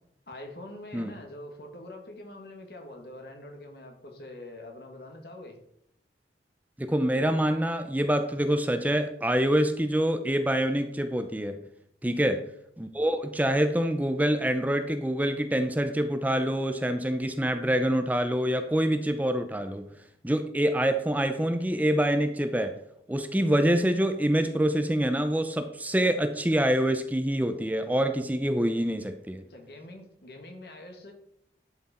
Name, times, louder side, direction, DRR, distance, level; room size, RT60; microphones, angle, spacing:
voice 1, 0.3-5.6 12.0-12.3 29.5-31.1, left 1 dB, 60° left, 3 dB, 1.9 m, -44 dB
voice 2, 6.8-11.6 12.0-12.4 12.8-19.9 20.2-22.8 23.1-29.4, right 1 dB, 10° right, 8 dB, 0.5 m, -26 dB
11.5 x 6.0 x 4.2 m, 0.73 s
head